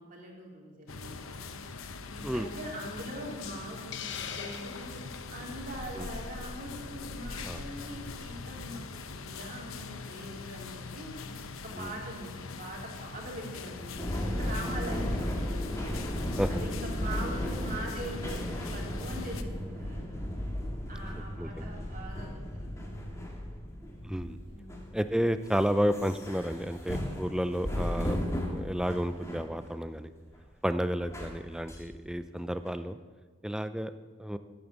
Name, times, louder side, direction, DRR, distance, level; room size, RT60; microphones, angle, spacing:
voice 1, 0.0-1.6 2.1-5.0 5.3-8.8 9.1-11.1 11.6-15.8 16.5-20.2 20.9-23.2 24.4-25.0, right 1 dB, 40° right, -1 dB, 3.0 m, -42 dB
sound 1, 0.9-19.4, left 4 dB, 85° left, 0.9 m, -42 dB
Hiss, 3.9-5.3, left 7 dB, 55° left, 0.9 m, -40 dB
sound 2, 14.0-29.6 30.1-30.4 31.0-31.8 32.7-32.8, equal, 15° left, 1.8 m, -35 dB
voice 2, 24.0-24.4 24.9-28.2 28.5-30.1 30.6-33.0 33.4-33.9 34.2-34.4, equal, 5° right, 11 dB, 0.4 m, -31 dB
14.0 x 8.7 x 7.4 m, 1.5 s
head